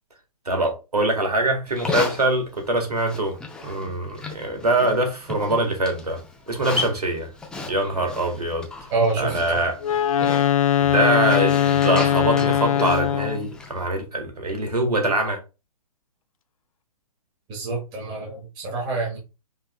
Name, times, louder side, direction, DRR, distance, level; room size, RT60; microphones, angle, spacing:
voice 1, 0.5-6.2 6.5-7.3 7.7-8.7 9.2-9.8 10.8-15.4, right 1 dB, 85° right, 1.7 m, -23 dB
Livestock farm animals working animals, 1.7-13.9, left 3 dB, 5° left, 0.5 m, -36 dB
voice 2, 8.9-9.6 17.5-19.2, right 3 dB, 25° right, 1.3 m, -26 dB
Wind instrument woodwind instrument, 9.8-13.5, left 10 dB, 65° left, 0.4 m, -20 dB
5.4 x 3.2 x 2.3 m
figure-of-eight pair, 130°, 19 cm